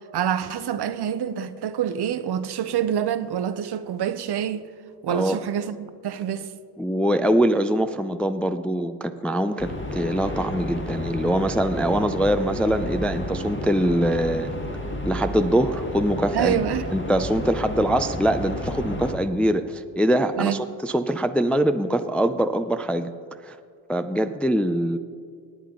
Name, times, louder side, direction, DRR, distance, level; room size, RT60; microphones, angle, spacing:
voice 1, 0.1-4.7 5.0-6.5 16.3-16.9 20.4-20.6, right 9 dB, 55° right, 0.8 m, -26 dB
voice 2, 5.1-5.4 6.8-14.6 15.1-16.6 16.9-23.1 23.4-23.6 23.9-25.0, right 1 dB, 5° left, 0.4 m, -23 dB
sound 1, 9.0-22.4, left 2 dB, 80° left, 3.5 m, -48 dB
sound 2, 9.6-19.1, left 1 dB, 25° left, 1.6 m, -32 dB
18.5 x 8.6 x 3.8 m
supercardioid pair, 60°, 48 cm